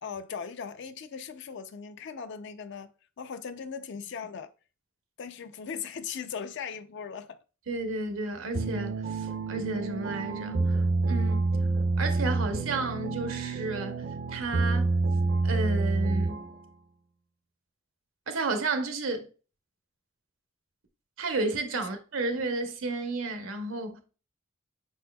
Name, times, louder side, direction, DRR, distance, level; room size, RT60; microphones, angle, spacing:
voice 1, 0.0-2.9 3.2-4.5 5.2-7.4 21.8-21.9, left 6 dB, 60° left, 0.4 m, -39 dB
voice 2, 7.7-11.6 12.0-14.0 14.3-14.9 15.4-16.4 18.3-19.3 21.2-24.0, right 3 dB, 80° right, 0.8 m, -32 dB
sound 1, 8.5-16.6, right 3 dB, 50° right, 0.4 m, -28 dB
5.2 x 4.2 x 2.2 m
head